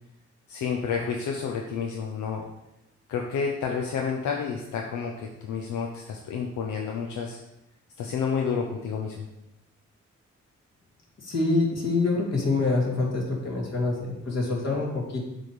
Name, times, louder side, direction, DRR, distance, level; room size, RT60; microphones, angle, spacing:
voice 1, 0.5-2.4 3.1-7.4 8.0-9.2, left 6 dB, 90° left, 1 dB, 0.6 m, -30 dB
voice 2, 11.2-15.2, left 3 dB, 60° left, -3 dB, 2.3 m, -26 dB
7.5 x 3.4 x 5.2 m, 0.91 s
supercardioid pair, 50°, 29 cm